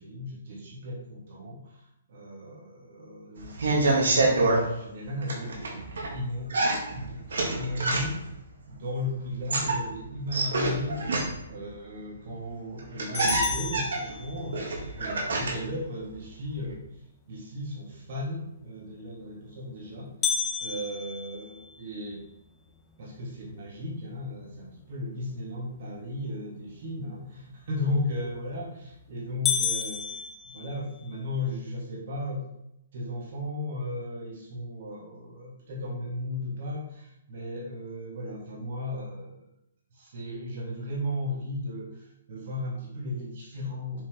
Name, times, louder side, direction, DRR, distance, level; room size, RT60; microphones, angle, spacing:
voice 1, 0.0-1.8 2.1-6.5 6.9-8.2 8.7-11.0 11.4-14.7 15.0-16.8 17.3-20.1 20.6-22.2 23.0-32.5 32.9-39.4 39.9-44.0, left 1 dB, 55° right, -4 dB, 2.3 m, -35 dB
sound 1, 3.4-4.6 5.2-6.1 6.5-8.3 9.3-11.6 12.5-12.6 12.8-15.7 16.0-16.7, right 2 dB, 80° right, 1.7 m, -27 dB
sound 2, 13.1-14.7 20.2-22.4 22.9-23.0 23.5-23.6 24.2-24.6 28.2-28.6 29.0-29.1 29.5-31.2, left 7 dB, 20° left, 0.7 m, -32 dB
7.0 x 4.6 x 3.5 m, 0.82 s
hypercardioid pair, 155°, 0 cm